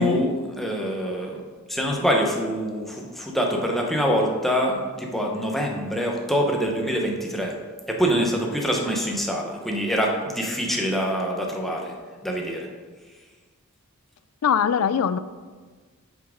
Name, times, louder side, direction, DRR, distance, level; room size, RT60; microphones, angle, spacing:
voice 1, 0.0-1.4 1.7-7.6 7.9-11.9 12.2-12.7, equal, ahead, 0 dB, 1.0 m, -25 dB
voice 2, 14.4-15.2, left 7 dB, 85° left, 15 dB, 0.4 m, -21 dB
6.7 x 6.1 x 5.1 m, 1.5 s
head